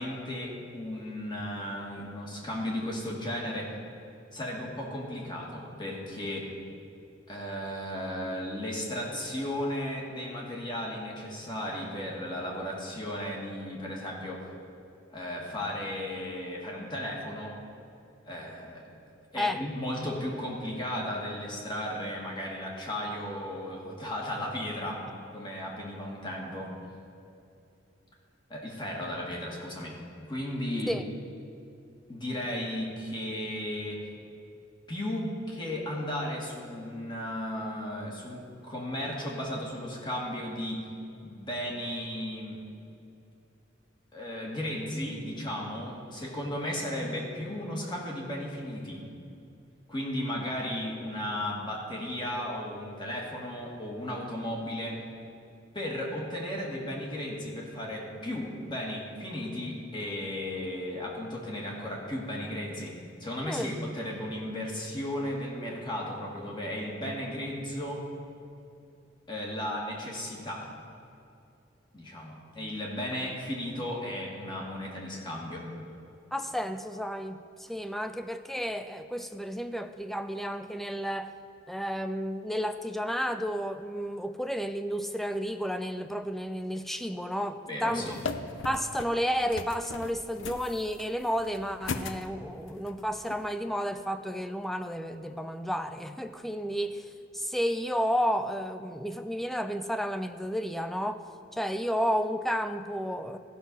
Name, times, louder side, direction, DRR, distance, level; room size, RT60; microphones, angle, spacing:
voice 1, 0.0-3.7 4.3-6.5 7.3-14.5 15.1-17.5 18.2-18.9 19.3-25.1 25.3-26.7 28.5-30.0 30.3-31.0 32.1-34.1 34.9-40.9 41.2-42.6 44.1-49.0 49.9-55.0 55.7-62.9 63.2-68.1 69.3-70.7 71.9-75.7 87.7-88.2, left 1 dB, 25° left, -2 dB, 1.8 m, -35 dB
voice 2, 76.3-81.3 81.7-88.1 88.6-97.1 97.3-101.2 101.5-103.4, equal, ahead, 9 dB, 0.4 m, -32 dB
sound 1, 88.0-93.5, left 4 dB, 75° left, 0.5 m, -39 dB
14.5 x 6.3 x 5.4 m, 2.7 s
head